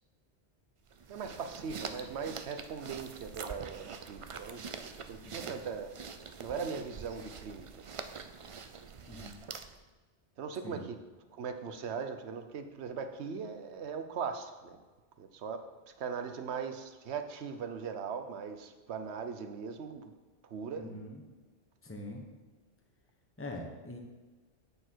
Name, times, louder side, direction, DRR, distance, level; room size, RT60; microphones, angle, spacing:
sound 1, 0.9-9.9, right 5 dB, 50° right, 0.4 m, -45 dB
voice 1, 1.1-4.6 5.1-5.9 6.4-7.7 10.4-11.0 11.3-14.8 15.2-15.6 16.0-20.1 20.4-20.9, right 6 dB, 75° right, 7 dB, 1.0 m, -39 dB
voice 2, 5.2-5.7 9.1-9.3 10.6-10.9 20.8-21.2 21.8-22.3 23.4-24.0, left 1 dB, 10° left, 1 dB, 1.0 m, -43 dB
8.6 x 6.6 x 4.5 m, 1.3 s
omnidirectional pair, 1.1 m